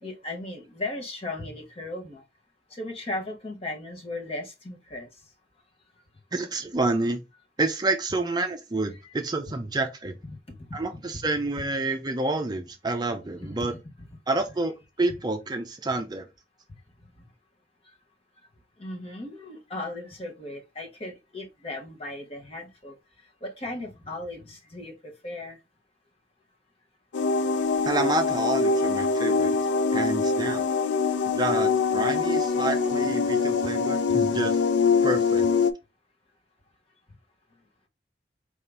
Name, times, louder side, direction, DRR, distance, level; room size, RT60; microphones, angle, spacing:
voice 1, 0.0-2.2 2.7-5.1 10.3-10.4 13.4-13.7 18.8-23.0 23.4-25.6, left 2 dB, 35° left, 1.0 m, -36 dB
voice 2, 6.3-7.2 7.6-10.2 10.7-13.7 14.3-16.3 27.8-29.6 29.9-30.6 31.4-34.6 35.0-35.5, right 2 dB, 25° right, 0.5 m, -28 dB
sound 1, 27.1-35.7, left 4 dB, 75° left, 0.4 m, -24 dB
4.8 x 2.8 x 3.3 m
head